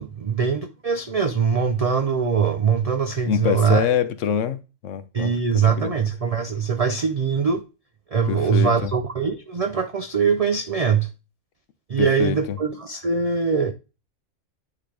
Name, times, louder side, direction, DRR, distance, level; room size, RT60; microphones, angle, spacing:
voice 1, 0.0-3.9 5.1-7.6 8.1-11.1 11.9-13.7, right 6 dB, 60° right, 0.3 m, -22 dB
voice 2, 3.3-5.9 8.3-8.9 12.0-12.6, left 8 dB, 75° left, 1.0 m, -25 dB
9.5 x 3.9 x 3.3 m
omnidirectional pair, 1.3 m